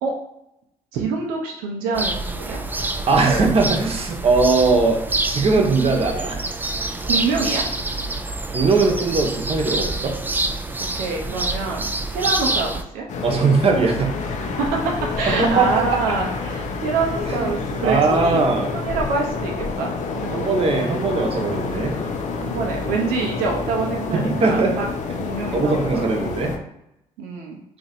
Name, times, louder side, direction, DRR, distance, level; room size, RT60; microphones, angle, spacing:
voice 1, 0.9-2.6 7.0-7.7 10.9-13.1 14.6-18.4 18.7-21.0 22.4-24.9 25.2-26.3 27.2-27.6, right 4 dB, 85° right, -1 dB, 0.6 m, -26 dB
sound 1, 1.9-12.8, right 2 dB, 15° right, 0.4 m, -26 dB
voice 2, 3.1-6.4 8.5-10.1 13.2-14.1 15.3-16.0 17.3-17.5 17.8-18.7 20.3-22.0 23.4-23.6 24.1-24.7 25.5-26.5, right 3 dB, 40° right, 2 dB, 0.9 m, -20 dB
sound 2, 13.1-26.6, left 4 dB, 55° left, 0.6 m, -28 dB
2.9 x 2.5 x 4.2 m, 0.82 s
supercardioid pair, 70°, 15 cm